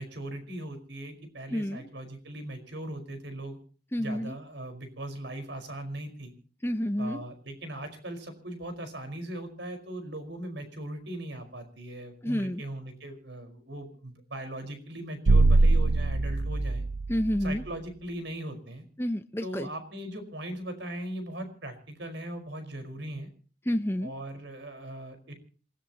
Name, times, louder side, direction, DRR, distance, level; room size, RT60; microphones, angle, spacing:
voice 1, 0.0-3.6 4.0-6.3 7.0-16.8 17.4-18.8 19.4-23.3 24.0-25.3, right 1 dB, 70° right, 8 dB, 5.1 m, -39 dB
voice 2, 1.5-1.9 3.9-4.3 6.6-7.2 12.2-12.6 17.1-17.6 19.0-19.7 23.7-24.1, equal, 10° left, 8 dB, 0.7 m, -29 dB
sound 1, 15.3-17.7, right 2 dB, 85° right, 0.7 m, -23 dB
27.5 x 16.5 x 3.0 m, 0.39 s
head